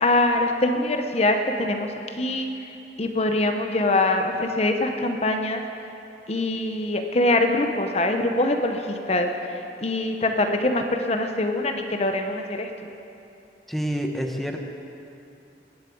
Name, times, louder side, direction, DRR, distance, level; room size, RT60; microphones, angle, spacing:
voice 1, 0.0-2.5 3.0-5.6 6.3-12.7, left 2 dB, 35° left, 5 dB, 0.9 m, -23 dB
voice 2, 13.7-14.6, equal, ahead, 2 dB, 1.0 m, -28 dB
20.5 x 7.5 x 8.5 m, 2.8 s
head